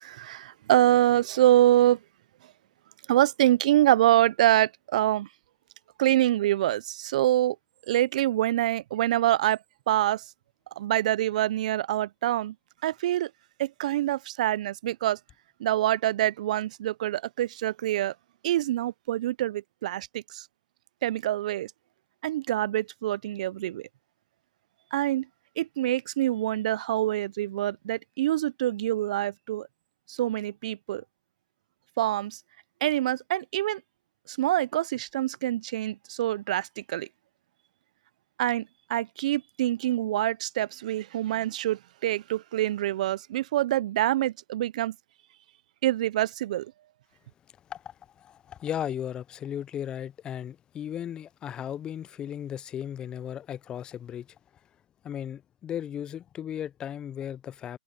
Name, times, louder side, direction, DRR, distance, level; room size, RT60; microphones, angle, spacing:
voice 1, 0.2-2.0 3.1-5.3 6.0-7.6 7.9-9.6 9.9-10.2 10.8-12.5 12.8-13.3 13.6-15.2 15.6-18.1 18.4-20.4 21.0-21.7 22.2-23.9 24.9-25.3 25.6-29.7 30.1-31.0 32.0-32.4 32.8-33.8 34.3-37.1 38.4-44.9 45.8-46.7, right 14 dB, 50° right, 0.5 m, -25 dB
voice 2, 47.7-54.3 55.0-57.8, left 9 dB, 15° left, 0.5 m, -36 dB
hypercardioid pair, 140°, 5 cm